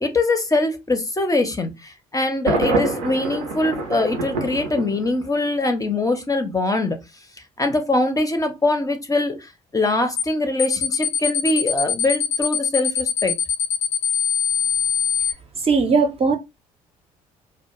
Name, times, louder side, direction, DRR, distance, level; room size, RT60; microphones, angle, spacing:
voice 1, 0.0-7.0 7.6-13.3, left 2 dB, 20° left, 0.6 m, -22 dB
Thunder, 2.5-5.5, right 3 dB, 80° right, 0.5 m, -26 dB
sound 1, 10.2-10.3 10.6-15.3, left 8 dB, 70° left, 0.5 m, -22 dB
voice 2, 15.6-16.4, right 4 dB, 35° right, 0.6 m, -18 dB
2.2 x 2.1 x 2.9 m
hypercardioid pair, 50°, 18 cm